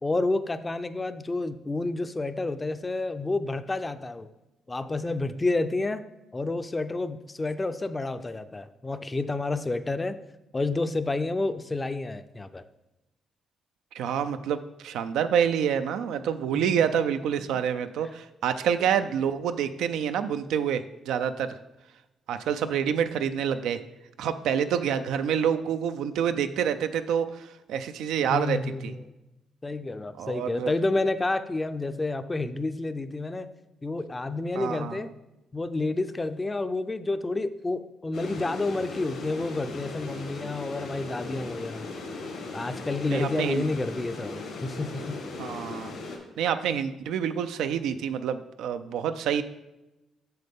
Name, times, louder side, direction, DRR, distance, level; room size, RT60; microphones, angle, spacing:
voice 1, 0.0-4.3 4.7-6.0 6.3-10.2 10.5-12.6 16.5-16.8 17.4-17.6 28.3-29.1 29.6-33.5 33.8-35.1 35.5-41.9 42.5-45.2, left 2 dB, 20° left, 11 dB, 0.5 m, -30 dB
voice 2, 13.9-21.6 22.3-23.8 24.2-28.6 28.8-28.9 30.2-30.7 34.6-35.0 43.1-43.6 45.4-45.9 46.4-49.4, right 8 dB, 85° right, 10 dB, 0.4 m, -27 dB
sound 1, 38.1-46.2, left 3 dB, 85° left, 2.0 m, -38 dB
7.8 x 6.6 x 3.6 m, 0.97 s
cardioid pair, 90°, 0 cm